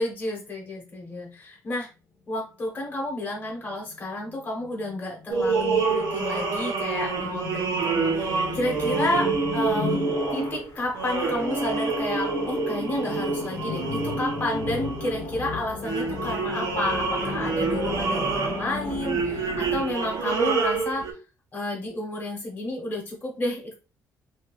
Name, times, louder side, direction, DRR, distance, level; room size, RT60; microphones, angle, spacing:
voice 1, 0.0-1.9 2.3-10.0 10.3-21.0 21.5-23.7, left 1 dB, 25° left, -1 dB, 1.0 m, -31 dB
sound 1, 3.4-19.8, left 4 dB, 80° left, 0.8 m, -35 dB
sound 2, 5.3-15.4 15.8-21.1, right 4 dB, 80° right, 0.8 m, -27 dB
2.7 x 2.4 x 3.0 m, 0.33 s
cardioid pair, 120°, 7 cm